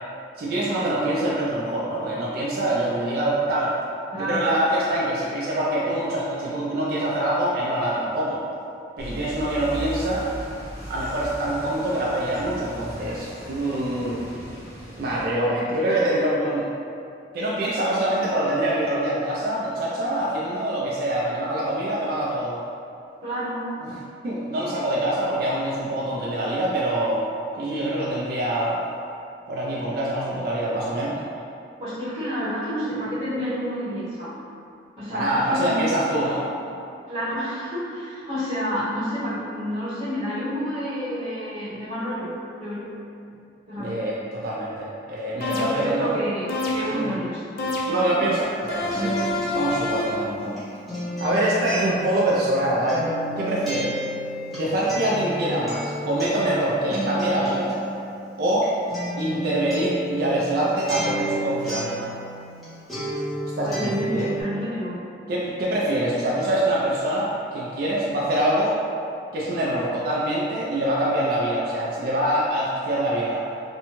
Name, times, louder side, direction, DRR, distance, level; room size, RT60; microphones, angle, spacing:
voice 1, 0.4-3.7 4.1-8.4 9.0-10.3 10.9-14.3 15.0-16.7 17.3-22.6 23.8-24.0 24.2-27.2 27.6-28.8 29.5-31.2 35.1-36.6 43.8-46.2 46.9-47.2 47.9-50.6 51.2-53.1 53.4-54.0 54.5-57.8 58.4-58.7 59.2-62.1 63.6-64.3 65.3-68.8 69.3-73.4, right 1 dB, 55° right, -5 dB, 0.3 m, -25 dB
voice 2, 4.1-4.5 23.2-23.7 31.8-34.4 35.0-35.9 37.1-42.3 42.6-42.9 43.7-44.0 45.4-47.5 47.8-48.4 53.7-53.9 63.6-65.0, equal, 25° right, -15 dB, 0.9 m, -29 dB
sound 1, 9.0-15.3, equal, 15° left, 1.1 m, -37 dB
sound 2, 45.4-46.0 46.5-47.1 47.6-48.2 48.7-50.3, left 1 dB, 50° left, 0.3 m, -28 dB
Acoustic guitar, 48.4-62.6 62.9-64.4, equal, ahead, 0.7 m, -32 dB
2.6 x 2.2 x 2.9 m, 2.5 s
head